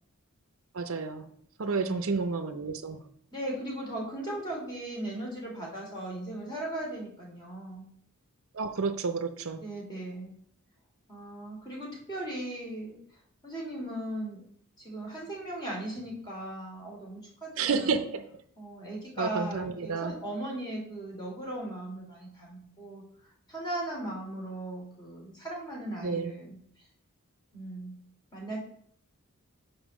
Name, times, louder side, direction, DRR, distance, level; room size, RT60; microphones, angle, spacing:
voice 1, 0.7-1.3 1.6-3.0 8.5-9.6 17.6-18.3 19.2-20.1 26.0-26.3, right 4 dB, 65° right, 9 dB, 0.6 m, -30 dB
voice 2, 1.6-2.1 3.3-7.9 9.6-10.3 11.1-13.0 13.4-14.4 14.8-18.0 18.6-23.0 23.5-26.6 27.5-28.0 28.3-28.6, right 1 dB, 20° left, -2 dB, 2.7 m, -38 dB
5.6 x 5.5 x 6.0 m, 0.64 s
head